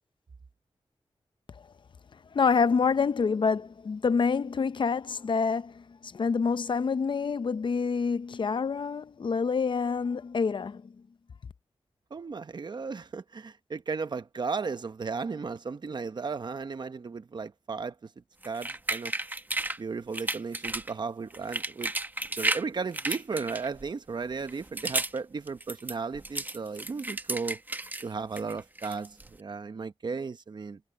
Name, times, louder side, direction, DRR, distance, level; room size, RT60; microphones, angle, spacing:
voice 1, 2.3-10.9, left 5 dB, 55° left, 0.6 m, -27 dB
voice 2, 12.1-17.9 18.4-19.1 19.8-21.9 22.4-27.6 28.0-30.8, right 4 dB, 45° right, 0.9 m, -35 dB
sound 1, 18.4-19.8 20.1-20.9 21.3-22.7 22.9-23.9 24.4-25.2 25.5-28.0 28.4-29.3, right 2 dB, 20° right, 0.9 m, -33 dB
wide cardioid pair, 130°, 10 cm